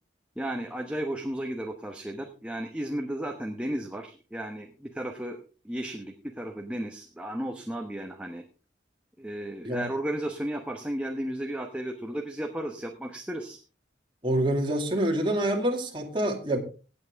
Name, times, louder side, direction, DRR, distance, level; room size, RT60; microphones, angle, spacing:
voice 1, 0.4-5.4 5.6-8.4 9.2-13.6, right 1 dB, 5° right, 3 dB, 1.0 m, -34 dB
voice 2, 14.2-16.6, right 1 dB, 25° right, 2 dB, 2.2 m, -26 dB
17.0 x 8.5 x 3.5 m, 0.35 s
head